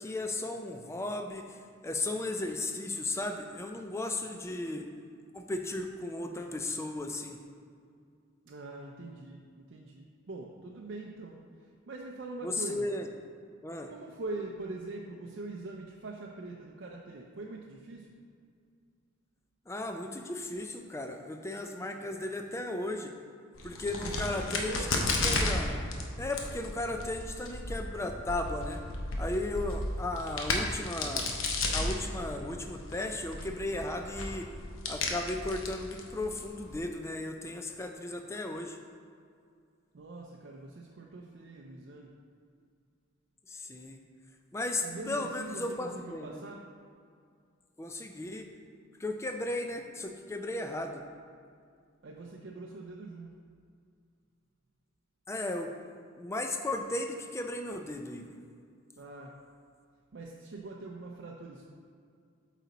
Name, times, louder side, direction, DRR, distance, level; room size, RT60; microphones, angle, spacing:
voice 1, 0.0-1.6 1.8-4.9 5.3-7.4 12.4-13.1 13.6-13.9 19.7-23.1 23.6-25.8 26.2-28.8 29.2-31.3 31.7-34.5 34.9-38.8 43.5-44.0 44.5-46.4 47.8-48.5 49.0-51.0 55.3-55.7 56.2-58.4, left 2 dB, 15° left, 4 dB, 0.4 m, -35 dB
voice 2, 8.5-11.4 11.9-12.9 13.9-18.1 24.0-24.9 39.9-42.1 44.8-46.6 52.0-53.3 59.0-59.4 60.1-61.7, right 2 dB, 55° right, -2 dB, 0.5 m, -43 dB
Crack, 23.5-36.8, left 2 dB, 75° left, 0.8 m, -34 dB
8.3 x 4.0 x 4.1 m, 2.2 s
head